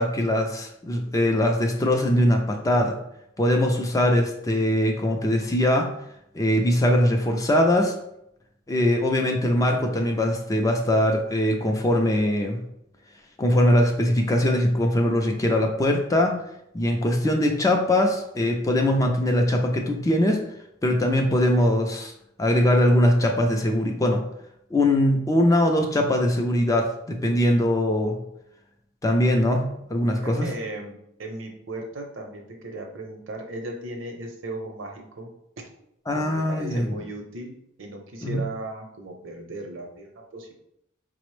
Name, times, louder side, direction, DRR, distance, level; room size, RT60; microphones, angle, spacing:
voice 1, 0.0-3.0 3.4-5.9 6.3-7.9 8.7-12.6 13.4-16.4 16.7-20.5 20.8-22.1 22.4-24.3 24.7-28.2 29.0-30.5 36.1-36.9 38.2-38.4, left 1 dB, 15° left, 2 dB, 0.3 m, -21 dB
voice 2, 9.4-10.0 30.1-35.6 36.1-40.5, right 2 dB, 65° right, 2 dB, 0.7 m, -37 dB
5.0 x 2.0 x 3.1 m, 0.78 s
head